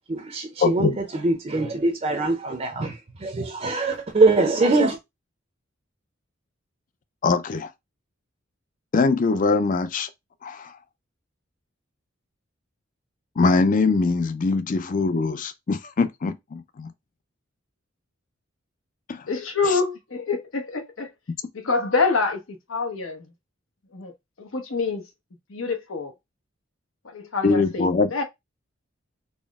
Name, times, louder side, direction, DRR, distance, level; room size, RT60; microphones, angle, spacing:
voice 1, 0.1-5.0, right 3 dB, 35° right, 0.5 m, -23 dB
voice 2, 0.6-1.0 7.2-7.7 8.9-10.1 10.4-10.7 13.4-16.9 19.1-19.2 27.4-28.1, left 3 dB, 40° left, 0.4 m, -22 dB
voice 3, 19.3-21.1 21.5-23.3 23.9-24.1 24.4-25.0 25.5-26.1 27.0-28.2, left 4 dB, 80° left, 0.8 m, -26 dB
4.2 x 2.0 x 3.5 m
head